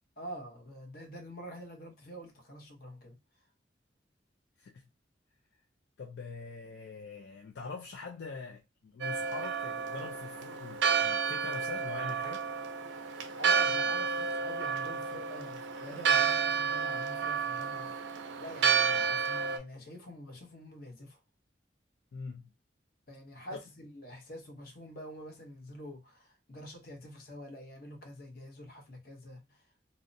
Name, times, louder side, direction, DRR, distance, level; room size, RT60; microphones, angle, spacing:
voice 1, 0.2-3.2 13.4-17.9 18.4-21.2 23.1-29.6, equal, 55° left, 0.8 m, -46 dB
voice 2, 6.0-12.5 22.1-22.5 23.5-23.6, left 4 dB, 70° left, 0.4 m, -43 dB
Church bell, 9.0-19.6, right 6 dB, 90° right, 0.4 m, -31 dB
2.6 x 2.0 x 2.6 m
head